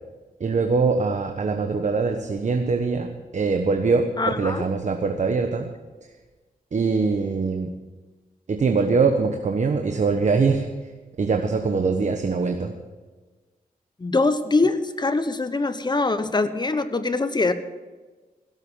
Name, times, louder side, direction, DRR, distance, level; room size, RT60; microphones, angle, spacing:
voice 1, 0.4-5.7 6.7-7.7 8.5-10.7 11.2-12.7, right 4 dB, 50° right, 4 dB, 1.2 m, -23 dB
voice 2, 4.2-4.6 14.0-17.5, left 3 dB, 30° left, 11 dB, 1.1 m, -23 dB
16.5 x 8.1 x 7.3 m, 1.3 s
cardioid pair, 80°, 15 cm